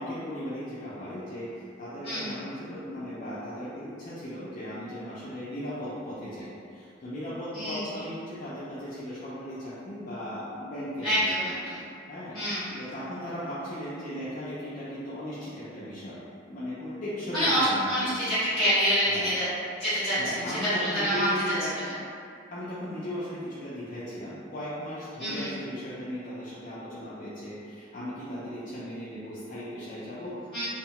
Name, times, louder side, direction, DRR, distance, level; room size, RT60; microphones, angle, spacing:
voice 1, 0.0-11.1 12.1-12.4 12.8-16.2 16.5-18.2 19.1-19.3 20.2-21.7 22.5-30.6, equal, 40° left, -10 dB, 0.4 m, -37 dB
voice 2, 2.0-2.4 7.5-7.8 11.0-11.8 12.3-12.7 17.3-19.5 19.8-21.3 25.2-25.5 30.5-30.6, equal, 5° left, -18 dB, 0.7 m, -26 dB
2.7 x 2.2 x 2.9 m, 2.5 s
head